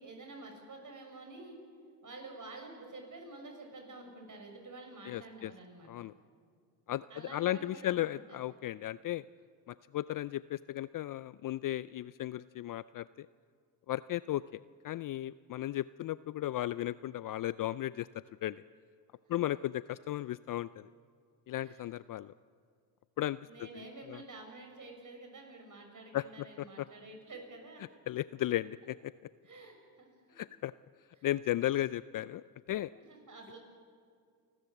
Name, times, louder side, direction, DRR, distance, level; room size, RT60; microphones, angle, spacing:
voice 1, 0.0-1.6 2.0-6.1 7.1-8.4 19.3-19.4 21.6-21.8 23.5-27.8 29.4-30.4 31.2-31.3 32.9-33.6, right 2 dB, 40° right, 3 dB, 6.5 m, -49 dB
voice 2, 5.1-5.5 5.9-6.1 6.9-9.2 9.7-13.3 13.9-18.1 18.4-18.6 19.3-20.9 21.5-22.3 23.2-23.4 23.7-24.2 26.1-26.9 28.1-29.1 30.4-30.7 31.2-32.9, left 14 dB, 45° left, 18 dB, 0.4 m, -35 dB
29.0 x 13.0 x 7.9 m, 2.2 s
supercardioid pair, 65°, 49 cm